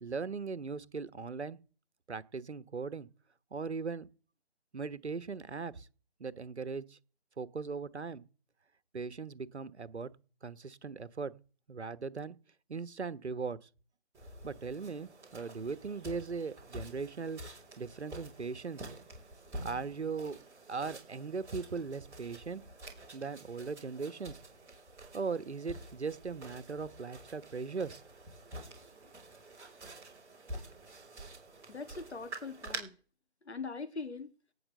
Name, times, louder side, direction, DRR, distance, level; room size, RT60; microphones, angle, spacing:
voice 1, 0.0-1.6 2.1-3.1 3.5-4.1 4.7-5.9 6.2-7.0 7.4-8.2 8.9-10.1 10.4-11.3 11.7-12.4 12.7-13.7 14.4-17.4 17.8-18.9 19.6-20.4 20.7-22.6 23.1-24.4 25.1-28.0, right 5 dB, 80° right, 1.3 m, -39 dB
sound 1, 14.1-32.8, right 1 dB, 10° right, 3.6 m, -48 dB
voice 2, 31.7-32.9 33.5-34.3, left 4 dB, 75° left, 2.1 m, -41 dB
18.0 x 6.0 x 7.7 m
figure-of-eight pair, 160°, 33 cm